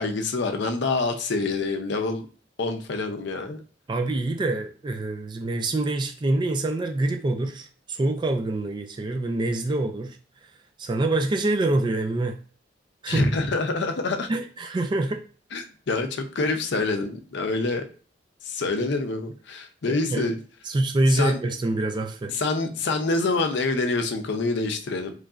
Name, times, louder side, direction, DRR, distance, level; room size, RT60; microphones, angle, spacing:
voice 1, 0.0-2.2 2.6-3.6 13.1-14.3 15.5-17.8 18.4-20.4 21.2-21.4 22.3-25.1, left 3 dB, 65° left, 0.5 m, -26 dB
voice 2, 3.9-10.2 10.8-12.4 13.0-13.3 14.3-15.2 19.9-20.3 20.6-22.3, right 2 dB, 25° right, 0.3 m, -25 dB
3.8 x 3.1 x 2.4 m
head